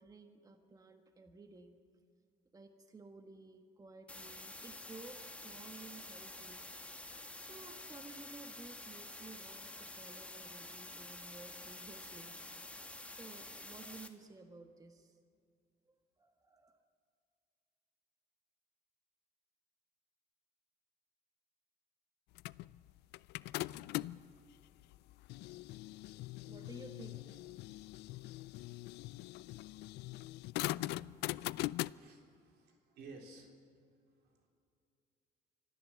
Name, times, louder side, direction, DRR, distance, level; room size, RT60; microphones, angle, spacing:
voice 1, 0.0-1.8 2.5-6.7 7.4-15.2 15.9-16.8 26.5-27.3 28.6-28.8 29.7-30.0 30.5-31.3, right 3 dB, 20° right, 6 dB, 1.4 m, -55 dB
sound 1, 4.1-14.1, left 2 dB, 5° left, 1.4 m, -49 dB
sound 2, 22.4-24.3 24.9-31.9, left 18 dB, 80° left, 0.4 m, -41 dB
voice 2, 31.8-33.5 34.2-34.5, right 3 dB, 75° right, 2 dB, 3.9 m, -55 dB
25.0 x 14.0 x 7.6 m, 2.3 s
cardioid pair, 110°, 17 cm